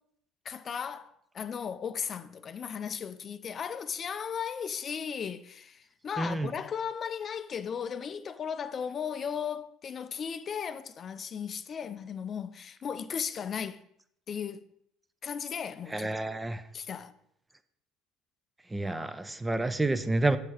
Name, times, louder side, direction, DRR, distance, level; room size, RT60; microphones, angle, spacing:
voice 1, 0.4-13.8 14.3-14.7 15.2-16.4 16.7-17.1, left 7 dB, 40° left, 0.4 m, -36 dB
voice 2, 6.2-6.5 15.9-16.6 18.7-20.4, right 2 dB, 15° right, 0.5 m, -29 dB
6.7 x 4.6 x 4.3 m
supercardioid pair, 85°, 0 cm